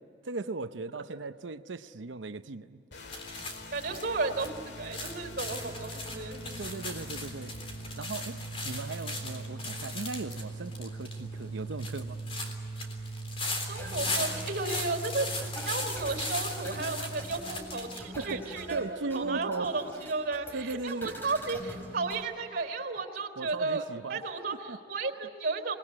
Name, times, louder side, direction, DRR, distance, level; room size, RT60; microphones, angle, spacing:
voice 1, 0.2-2.8 6.6-7.6 8.0-12.2 18.2-19.7 20.5-21.1 23.4-24.2 24.7-24.8, right 3 dB, 85° right, 10 dB, 0.7 m, -37 dB
sound 1, 2.9-17.2, right 2 dB, 65° left, 2.2 m, -41 dB
sound 2, 3.1-18.0, left 2 dB, 30° left, 3.6 m, -38 dB
voice 2, 3.7-6.6 13.7-23.8 24.1-25.8, right 3 dB, 55° right, 6 dB, 3.7 m, -34 dB
sound 3, 13.7-22.2, equal, 10° left, 4.7 m, -44 dB
28.0 x 20.5 x 9.9 m, 2.6 s
head